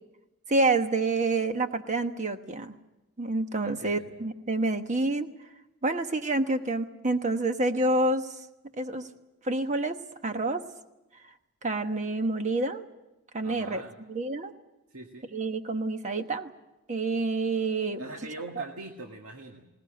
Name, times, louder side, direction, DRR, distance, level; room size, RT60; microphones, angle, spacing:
voice 1, 0.5-2.7 3.2-5.3 5.8-8.2 8.8-9.1 9.4-10.0 10.2-10.6 11.6-12.9 13.3-13.8 14.1-14.5 15.3-16.5 16.9-18.1 18.6-18.7, right 2 dB, 35° right, 7 dB, 1.2 m, -28 dB
voice 2, 3.6-4.2 13.4-14.0 14.9-15.3 18.0-19.7, right 2 dB, 75° right, 1 dB, 1.9 m, -42 dB
20.5 x 19.0 x 8.9 m, 0.99 s
head